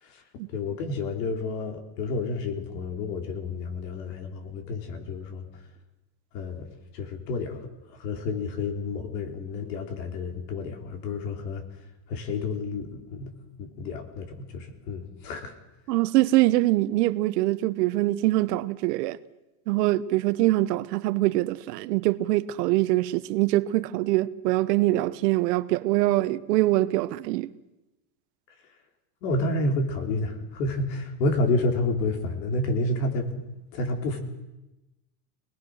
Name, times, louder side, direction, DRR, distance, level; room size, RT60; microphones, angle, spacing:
voice 1, 0.5-5.4 6.3-6.7 6.9-11.6 12.1-13.3 13.6-15.6 29.2-33.4 33.7-34.2, left 2 dB, 80° left, 4.0 m, -30 dB
voice 2, 15.9-19.2 19.7-27.5, right 17 dB, 75° right, 1.1 m, -24 dB
26.0 x 20.0 x 6.5 m
supercardioid pair, 165°, 49 cm